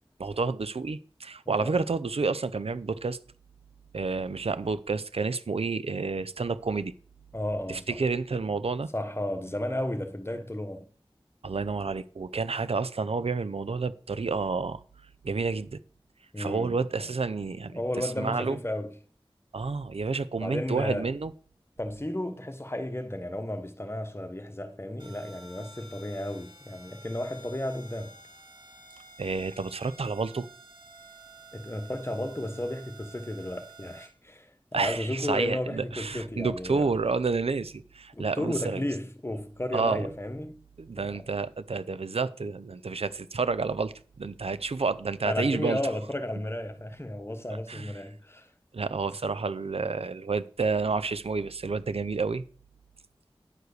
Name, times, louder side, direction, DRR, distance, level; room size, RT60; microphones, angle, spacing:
voice 1, 0.2-3.2 3.9-6.9 7.7-8.9 11.4-14.8 15.2-15.8 16.4-18.6 19.5-21.3 29.2-30.5 34.7-38.9 39.7-40.1 40.8-45.8 47.7-47.9 48.7-52.4, right 4 dB, 85° right, 0.6 m, -30 dB
voice 2, 1.5-1.8 7.3-8.0 8.9-10.9 16.3-16.8 17.7-18.9 20.4-21.1 21.8-28.2 31.5-36.8 38.1-40.6 41.1-41.3 45.2-48.5, left 1 dB, 25° left, 1.1 m, -33 dB
sound 1, 25.0-34.1, right 2 dB, 50° right, 2.9 m, -51 dB
9.6 x 4.8 x 6.5 m
wide cardioid pair, 55°, 10 cm